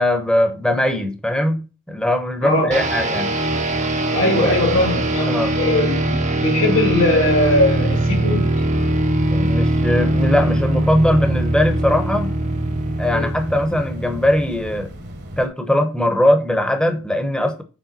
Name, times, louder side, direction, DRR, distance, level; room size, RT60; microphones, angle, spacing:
voice 1, 0.0-3.3 4.4-4.5 5.3-5.6 9.3-12.3 13.0-14.9 15.4-17.6, left 1 dB, 5° left, 0.9 m, -20 dB
voice 2, 2.4-2.8 4.1-8.6 13.1-13.3, left 1 dB, 70° left, 3.7 m, -20 dB
sound 1, 2.7-14.9, right 1 dB, 35° right, 0.8 m, -21 dB
sound 2, 7.2-15.5, equal, 50° right, 1.3 m, -35 dB
7.2 x 3.4 x 4.2 m
head